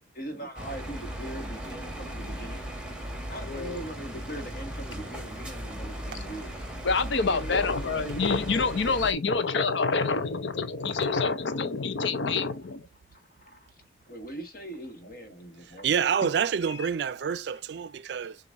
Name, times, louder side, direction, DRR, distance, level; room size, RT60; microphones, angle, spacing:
voice 1, 0.1-2.7 3.3-6.5 7.2-8.2 13.1-13.6 14.0-15.9, right 1 dB, 50° left, 1.5 m, -41 dB
sound 1, 0.6-9.1, right 1 dB, 5° right, 1.2 m, -37 dB
voice 2, 3.4-3.8 6.8-12.9 16.7-16.8, left 4 dB, 75° left, 0.6 m, -27 dB
voice 3, 15.8-18.4, right 7 dB, 60° right, 0.4 m, -27 dB
6.9 x 2.5 x 2.6 m
head